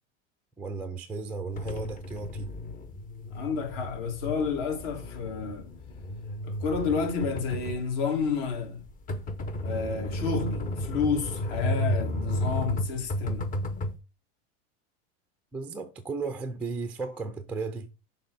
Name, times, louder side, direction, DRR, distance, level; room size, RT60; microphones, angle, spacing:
voice 1, 0.6-2.5 15.5-17.9, right 4 dB, 5° right, 0.4 m, -35 dB
sound 1, 1.6-13.9, left 1 dB, 25° left, 0.9 m, -33 dB
voice 2, 3.3-5.7 6.4-8.8 9.6-13.5, left 5 dB, 55° left, 2.6 m, -30 dB
6.7 x 3.6 x 5.5 m
supercardioid pair, 140°, 35 cm